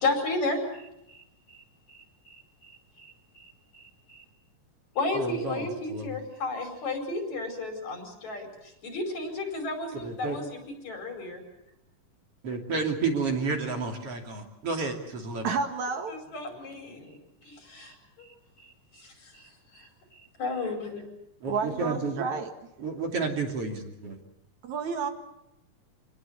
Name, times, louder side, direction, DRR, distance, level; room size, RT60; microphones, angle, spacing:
voice 1, 0.0-1.6 1.9-4.2 4.9-11.4 16.1-17.2 17.4-18.3 18.6-21.0, left 2 dB, 60° left, 5 dB, 6.2 m, -34 dB
voice 2, 5.1-6.2 9.9-10.4 12.4-15.5 21.4-22.3 22.8-24.1, right 4 dB, 45° right, 2 dB, 3.7 m, -31 dB
voice 3, 15.4-16.2 21.5-22.5 24.7-25.1, right 5 dB, 65° right, 6 dB, 3.0 m, -30 dB
26.5 x 19.0 x 8.3 m, 0.84 s
omnidirectional pair, 3.7 m